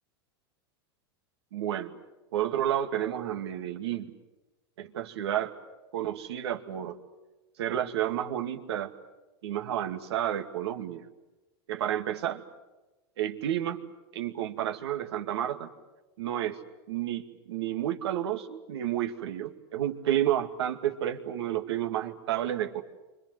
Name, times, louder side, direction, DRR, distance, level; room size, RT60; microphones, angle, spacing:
voice 1, 1.5-2.0 2.3-4.1 4.8-5.6 5.9-7.0 7.6-8.9 9.4-11.0 11.7-12.4 13.2-13.8 14.1-15.7 16.2-16.6 16.9-22.8, right 11 dB, 85° right, 6 dB, 2.4 m, -31 dB
29.5 x 25.5 x 7.9 m, 1.1 s
supercardioid pair, 125°, 13 cm